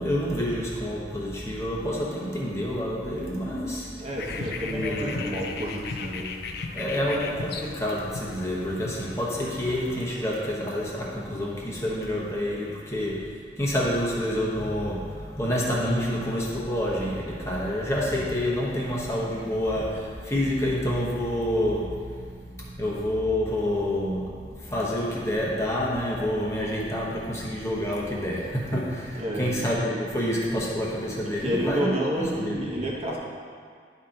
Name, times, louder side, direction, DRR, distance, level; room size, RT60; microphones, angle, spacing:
voice 1, 0.0-3.9 4.6-5.4 6.7-32.7, equal, 15° left, -5 dB, 1.0 m, -28 dB
voice 2, 4.0-6.3 29.1-29.5 31.2-33.2, equal, 35° right, -3 dB, 1.1 m, -30 dB
sound 1, 4.2-10.2, left 4 dB, 60° left, 0.5 m, -36 dB
11.0 x 4.3 x 3.8 m, 2.1 s
head